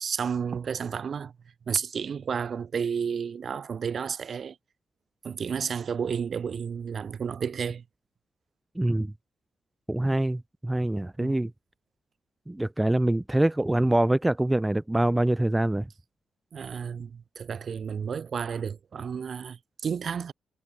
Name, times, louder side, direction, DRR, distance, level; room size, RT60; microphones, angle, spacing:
voice 1, 0.0-1.3 1.7-4.6 5.2-7.8 11.2-11.4 16.5-20.3, right 6 dB, 60° right, 1.7 m, -31 dB
voice 2, 8.8-9.1 9.9-11.5 12.5-15.9, right 1 dB, 15° right, 0.9 m, -25 dB
cardioid pair, 60°, 0 cm